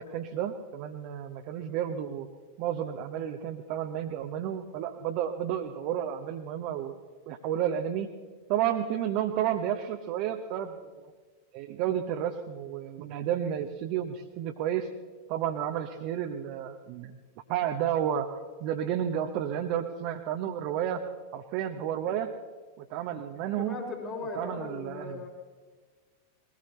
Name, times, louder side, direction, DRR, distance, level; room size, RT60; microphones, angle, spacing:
voice 1, 0.0-2.3 2.6-6.9 7.3-8.1 8.5-11.1 11.5-14.9 15.3-17.1 17.5-18.3 18.6-21.0 21.3-22.3 22.8-23.8 24.3-25.3, right 10 dB, 45° right, 4 dB, 1.0 m, -31 dB
voice 2, 23.6-25.3, left 4 dB, 35° left, -5 dB, 3.2 m, -38 dB
21.0 x 19.5 x 3.2 m, 1.4 s
figure-of-eight pair, 90°, 0 cm